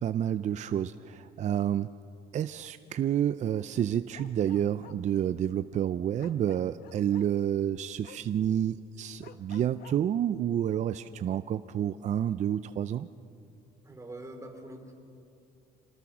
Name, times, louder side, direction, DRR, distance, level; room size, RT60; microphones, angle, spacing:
voice 1, 0.0-1.9 2.3-13.1, right 10 dB, 45° right, 12 dB, 0.5 m, -29 dB
Bark, 4.1-5.0 6.2-7.3 8.0-8.2 9.2-10.0, left 12 dB, 70° left, 1.0 m, -51 dB
voice 2, 13.8-14.9, right 1 dB, 20° right, 3 dB, 3.4 m, -44 dB
26.5 x 19.0 x 6.1 m, 2.6 s
cardioid pair, 110°, 17 cm